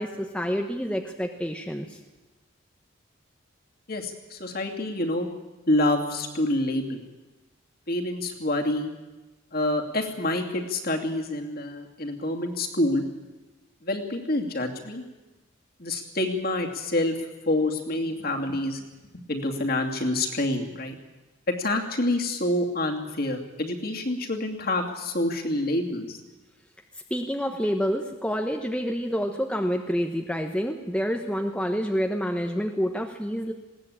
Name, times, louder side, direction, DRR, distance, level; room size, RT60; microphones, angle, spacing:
voice 1, 0.0-2.0 27.1-33.5, equal, 5° left, 3 dB, 1.0 m, -28 dB
voice 2, 3.9-5.3 5.7-7.0 7.9-8.9 9.5-13.0 13.8-15.0 15.8-17.2 17.5-18.8 19.1-21.0 21.5-26.2, left 1 dB, 45° left, 2 dB, 2.7 m, -27 dB
20.5 x 17.5 x 8.7 m, 1.1 s
head